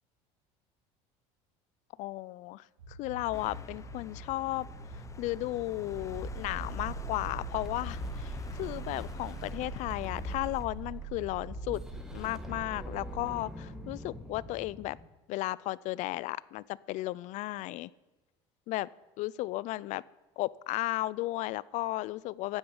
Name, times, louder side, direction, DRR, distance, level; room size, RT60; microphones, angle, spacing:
voice 1, 2.0-4.7 4.9-11.8 12.1-15.0 15.3-17.9 18.7-18.9 19.2-20.0 20.4-22.6, left 18 dB, 60° left, 22 dB, 0.4 m, -34 dB
sound 1, 2.8-8.4, right 1 dB, 90° right, 2.5 m, -47 dB
sound 2, 3.3-10.7, left 5 dB, 20° left, 0.9 m, -49 dB
sound 3, 5.9-15.1, right 1 dB, 5° right, 1.7 m, -40 dB
15.0 x 5.4 x 8.6 m, 1.1 s
supercardioid pair, 100°, 14 cm